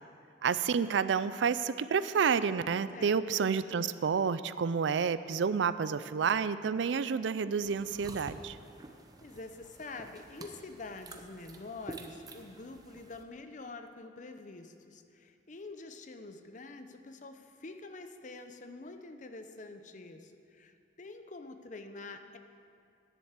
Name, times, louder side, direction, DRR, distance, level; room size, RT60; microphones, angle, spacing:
voice 1, 0.4-8.6, right 6 dB, 85° right, 14 dB, 0.4 m, -29 dB
voice 2, 2.9-3.4 9.2-22.4, left 3 dB, 45° left, 7 dB, 0.7 m, -46 dB
Slurping tea and smacking lips, 7.6-13.2, right 2 dB, 20° right, 0.7 m, -49 dB
10.5 x 7.7 x 8.1 m, 2.4 s
head